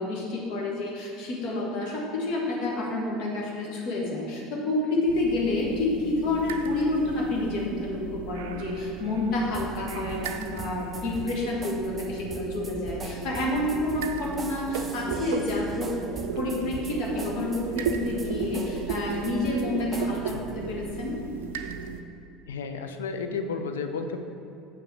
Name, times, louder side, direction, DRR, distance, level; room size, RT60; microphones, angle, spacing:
voice 1, 0.0-15.9 16.3-21.1, left 2 dB, 55° left, -2 dB, 1.7 m, -29 dB
sound 1, 5.1-22.0, right 6 dB, 65° right, 0.4 m, -35 dB
sound 2, 9.5-20.6, right 3 dB, 20° right, 0.8 m, -41 dB
voice 2, 22.5-24.2, left 4 dB, 70° left, 6 dB, 0.5 m, -32 dB
7.1 x 5.7 x 4.7 m, 2.7 s
figure-of-eight pair, 65°, 0 cm